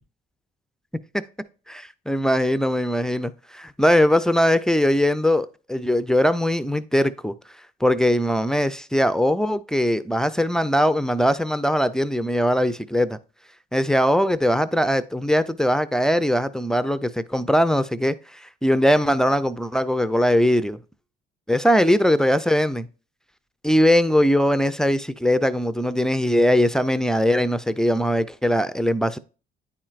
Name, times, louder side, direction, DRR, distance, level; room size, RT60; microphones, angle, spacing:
voice 1, 1.7-7.3 7.8-13.2 13.7-20.8 21.5-22.9 23.6-29.2, equal, 5° left, 0.4 m, -21 dB
9.9 x 4.4 x 2.4 m
cardioid pair, 110°, 17 cm